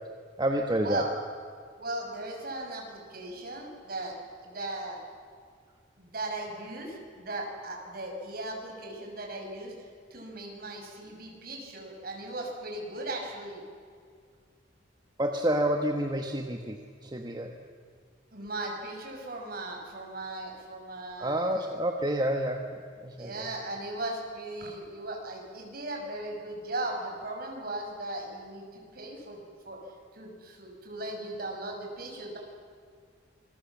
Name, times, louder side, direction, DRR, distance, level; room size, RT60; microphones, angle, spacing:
voice 1, 0.4-1.0 15.2-17.6 21.2-23.5, right 1 dB, 25° right, 3 dB, 1.3 m, -29 dB
voice 2, 1.8-4.1 4.4-5.0 6.0-9.7 10.1-13.6 18.3-21.6 23.2-29.8 30.1-32.4, right 2 dB, 55° right, 1 dB, 5.8 m, -37 dB
26.5 x 21.5 x 7.4 m, 2.1 s
head